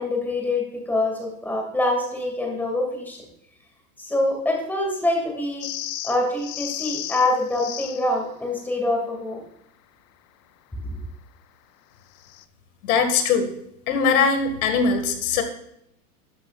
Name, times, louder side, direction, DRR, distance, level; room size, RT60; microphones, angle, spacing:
voice 1, 0.0-3.2 4.0-5.7 6.0-9.4 10.8-10.9, left 2 dB, 5° left, 0 dB, 2.2 m, -25 dB
sound 1, 5.6-8.1 12.2-12.4, left 13 dB, 90° left, 0.7 m, -34 dB
voice 2, 12.8-13.5 13.9-15.4, left 5 dB, 60° left, 7 dB, 1.9 m, -21 dB
12.5 x 7.8 x 2.4 m, 0.76 s
supercardioid pair, 145°, 48 cm